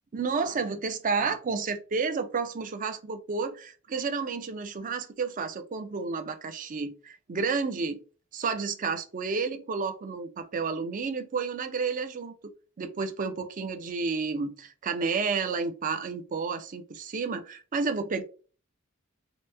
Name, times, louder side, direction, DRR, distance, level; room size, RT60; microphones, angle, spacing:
voice 1, 0.1-8.0 8.3-12.3 12.8-18.2, right 4 dB, 40° right, 0.4 m, -31 dB
2.9 x 2.0 x 3.3 m
head